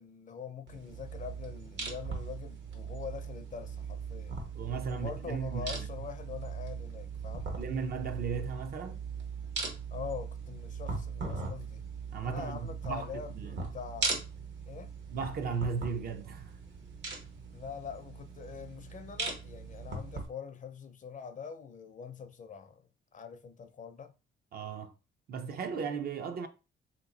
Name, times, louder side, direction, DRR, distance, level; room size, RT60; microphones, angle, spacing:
voice 1, 0.0-4.4 4.9-7.5 9.9-11.8 12.2-14.2 14.7-14.9 17.5-22.9 23.1-24.1, left 7 dB, 40° left, 0.5 m, -44 dB
sound 1, 0.7-20.3, right 5 dB, 65° right, 1.2 m, -39 dB
voice 2, 4.5-5.8 7.6-9.0 12.1-13.6 15.1-16.5 24.5-24.9 25.3-26.5, right 5 dB, 50° right, 0.6 m, -36 dB
2.9 x 2.2 x 3.9 m
cardioid pair, 90°, 20 cm